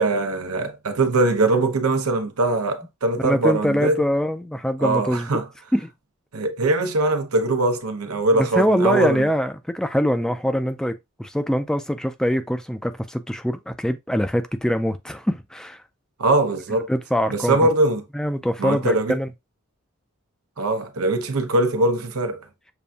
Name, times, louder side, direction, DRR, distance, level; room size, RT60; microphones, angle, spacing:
voice 1, 0.0-4.0 4.8-5.5 6.3-9.3 16.2-16.9 17.3-18.0 18.6-19.2 20.6-22.4, right 2 dB, 80° right, 0.8 m, -21 dB
voice 2, 3.2-5.3 5.7-5.9 8.3-15.8 16.9-17.6 18.1-19.3, equal, 5° left, 0.3 m, -23 dB
6.8 x 2.6 x 2.3 m
head